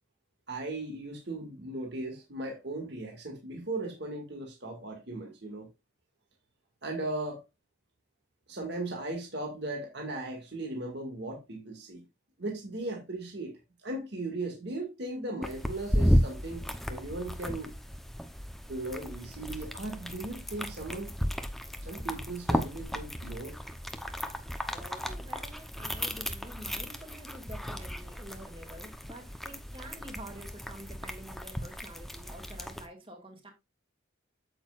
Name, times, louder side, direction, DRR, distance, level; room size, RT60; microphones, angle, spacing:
voice 1, 0.5-5.7 6.8-7.4 8.5-12.0 12.4-16.6 16.9-17.7 18.7-21.1 21.8-23.6, right 2 dB, 55° right, 2.0 m, -37 dB
sound 1, 15.4-32.9, equal, ahead, 0.7 m, -34 dB
voice 2, 24.3-33.5, right 1 dB, 25° right, 2.4 m, -48 dB
8.7 x 8.0 x 2.4 m
head